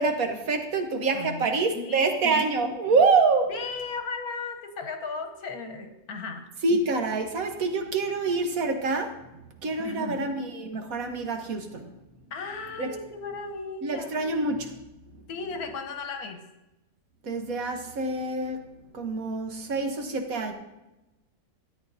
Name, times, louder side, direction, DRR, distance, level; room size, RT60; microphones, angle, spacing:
voice 1, 0.0-3.5 6.6-9.1 9.6-11.9 12.8-12.9 13.8-14.7 17.2-18.6 18.9-20.5, right 3 dB, 70° right, 4 dB, 1.5 m, -26 dB
voice 2, 1.1-1.5 1.7-2.4 3.5-6.4 9.8-10.3 12.3-14.4 15.3-16.4, left 4 dB, 80° left, 5 dB, 1.6 m, -36 dB
13.5 x 9.0 x 2.7 m, 0.98 s
omnidirectional pair, 1.6 m